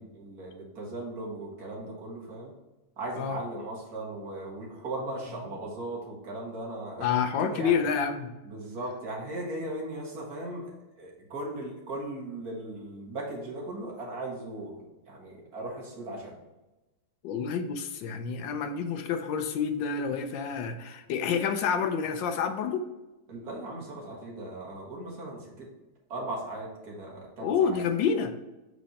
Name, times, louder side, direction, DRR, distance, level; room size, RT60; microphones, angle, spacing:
voice 1, 0.0-2.5 3.0-7.1 7.5-7.8 8.4-16.4 23.3-25.7 26.1-27.8, right 2 dB, 45° right, -3 dB, 2.0 m, -38 dB
voice 2, 7.0-8.3 17.2-22.9 27.4-28.3, left 6 dB, 70° left, 7 dB, 1.2 m, -28 dB
6.4 x 4.1 x 4.2 m, 1.0 s
omnidirectional pair, 2.4 m